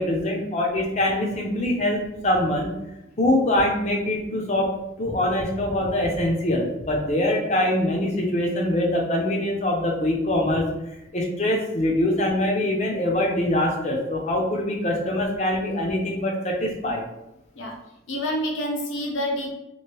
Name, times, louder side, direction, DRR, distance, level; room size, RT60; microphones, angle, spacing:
voice 1, 0.0-2.7 3.2-4.7 5.0-10.7 11.1-17.0, left 1 dB, 35° left, 0 dB, 0.5 m, -23 dB
voice 2, 18.1-19.6, equal, 80° left, 1 dB, 0.7 m, -28 dB
3.0 x 2.6 x 3.0 m, 0.90 s
head